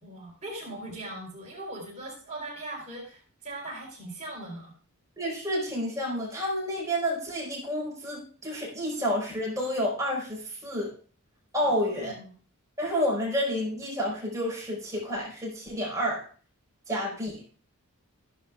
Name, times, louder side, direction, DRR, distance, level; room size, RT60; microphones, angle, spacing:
voice 1, 0.0-4.7 11.6-12.3, right 1 dB, 30° right, -2 dB, 3.9 m, -40 dB
voice 2, 5.2-10.9 11.5-12.1 12.8-16.3 16.9-17.4, equal, 15° right, -4 dB, 4.7 m, -30 dB
14.5 x 11.0 x 2.4 m, 0.40 s
head